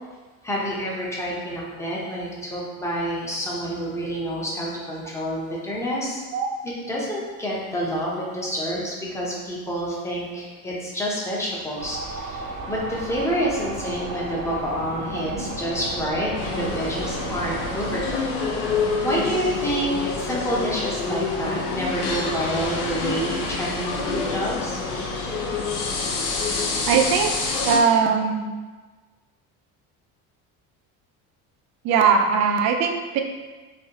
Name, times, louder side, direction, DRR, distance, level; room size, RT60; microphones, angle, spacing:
voice 1, 0.4-6.2 6.6-18.2 19.0-24.8, equal, 10° left, -5 dB, 0.7 m, -28 dB
sound 1, 11.8-18.2, right 2 dB, 90° right, 1.0 m, -33 dB
sound 2, 16.3-27.8, left 4 dB, 70° left, 0.7 m, -27 dB
voice 2, 26.9-27.3 27.6-28.5 31.8-33.2, right 6 dB, 50° right, 4 dB, 0.5 m, -20 dB
4.1 x 2.8 x 2.8 m, 1.3 s
cardioid pair, 140°, 34 cm